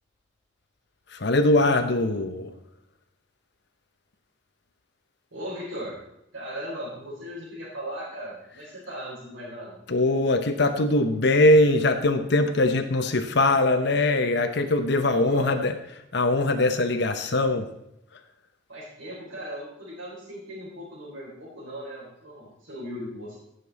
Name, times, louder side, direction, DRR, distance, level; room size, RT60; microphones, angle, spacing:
voice 1, 1.1-2.5 9.9-15.8 16.1-17.7, left 2 dB, 55° left, 7 dB, 0.8 m, -22 dB
voice 2, 5.3-6.0 6.3-9.8 15.0-15.6 18.7-23.4, equal, 80° right, -7 dB, 4.1 m, -37 dB
17.0 x 6.8 x 4.1 m, 0.84 s
head